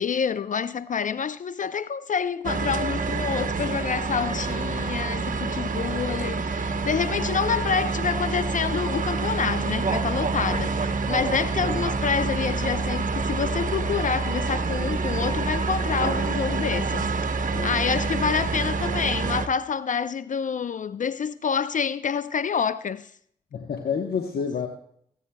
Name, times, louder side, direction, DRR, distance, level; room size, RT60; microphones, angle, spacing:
voice 1, 0.0-17.1 17.3-23.1, left 6 dB, 50° left, 0.4 m, -27 dB
sound 1, 2.4-19.5, right 4 dB, 50° right, 1.0 m, -27 dB
voice 2, 7.0-7.3 16.6-16.7 17.5-17.7 23.5-24.7, left 6 dB, 65° left, 1.1 m, -29 dB
20.5 x 9.1 x 2.2 m
supercardioid pair, 45°, 17 cm